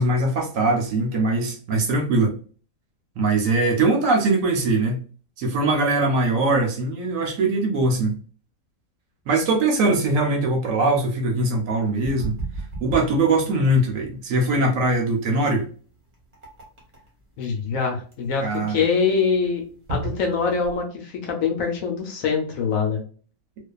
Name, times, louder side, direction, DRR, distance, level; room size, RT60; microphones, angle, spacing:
voice 1, 0.0-2.4 3.2-5.0 5.4-8.2 9.3-12.3 12.8-15.6 18.4-18.8, right 2 dB, 70° right, 0.9 m, -21 dB
sound 1, 12.0-20.8, right 3 dB, 35° right, 0.8 m, -35 dB
voice 2, 17.4-19.6 19.9-23.0, left 5 dB, 70° left, 0.9 m, -24 dB
2.5 x 2.3 x 2.2 m
omnidirectional pair, 1.6 m